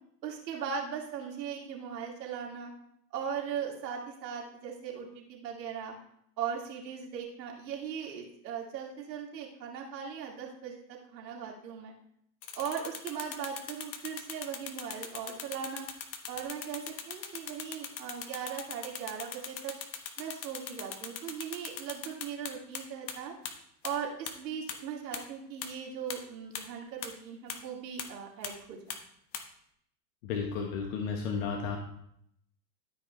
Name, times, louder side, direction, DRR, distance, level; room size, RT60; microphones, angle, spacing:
voice 1, 0.2-2.7 3.1-5.9 6.4-11.9 12.5-15.9 16.3-19.7 20.2-23.3 23.8-29.0, right 7 dB, 80° right, -1 dB, 2.5 m, -39 dB
sound 1, 12.4-22.8 23.1-23.2 23.4-23.5 23.8-23.9 24.3-24.4 24.7-24.8 25.1-25.2 25.6-25.7 26.1-26.2 26.5-26.6 27.0-27.1 27.5-27.6 28.0-28.1 28.4-28.5 28.9-29.0 29.3-29.4, left 8 dB, 90° left, 1.3 m, -39 dB
voice 2, 30.2-31.8, left 5 dB, 55° left, 2 dB, 1.4 m, -33 dB
13.0 x 5.2 x 3.2 m, 0.72 s
supercardioid pair, 135°, 49 cm